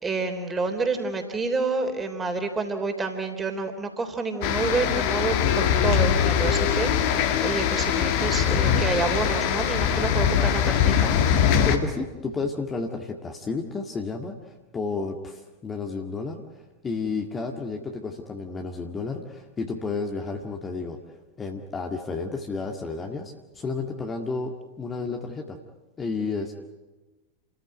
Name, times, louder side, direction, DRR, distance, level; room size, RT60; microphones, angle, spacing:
voice 1, 0.0-11.1, right 3 dB, 15° right, 5 dB, 3.6 m, -28 dB
sound 1, 4.4-11.8, left 8 dB, 45° left, 2.1 m, -22 dB
voice 2, 11.6-21.0 21.4-25.6 26.0-26.6, left 4 dB, 20° left, 3 dB, 1.9 m, -32 dB
29.5 x 14.5 x 9.5 m, 1.2 s
figure-of-eight pair, 90°, 0 cm